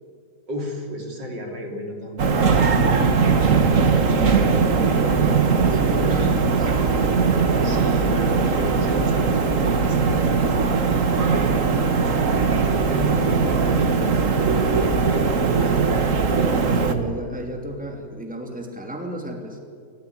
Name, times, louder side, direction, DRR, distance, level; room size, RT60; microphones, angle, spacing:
voice 1, 0.5-2.5 6.0-6.4 7.6-12.0 12.6-14.1 14.8-15.7, equal, 80° right, 2 dB, 4.3 m, -33 dB
sound 1, 2.2-16.9, right 5 dB, 45° right, 1.7 m, -20 dB
voice 2, 3.2-6.4 16.4-19.6, equal, 5° right, 2 dB, 3.1 m, -34 dB
28.5 x 14.5 x 9.7 m, 2.1 s
omnidirectional pair, 1.9 m